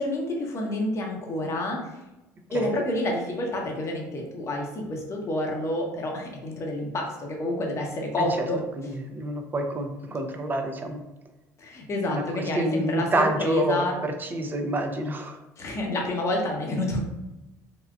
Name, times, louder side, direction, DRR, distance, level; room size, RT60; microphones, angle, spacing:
voice 1, 0.0-2.0 2.5-8.6 11.6-13.9 15.6-17.0, left 1 dB, 40° left, 0 dB, 0.8 m, -28 dB
voice 2, 8.8-11.0 12.1-15.4, right 1 dB, 25° right, 4 dB, 0.6 m, -28 dB
3.6 x 2.1 x 2.4 m, 0.98 s
supercardioid pair, 75°, 7 cm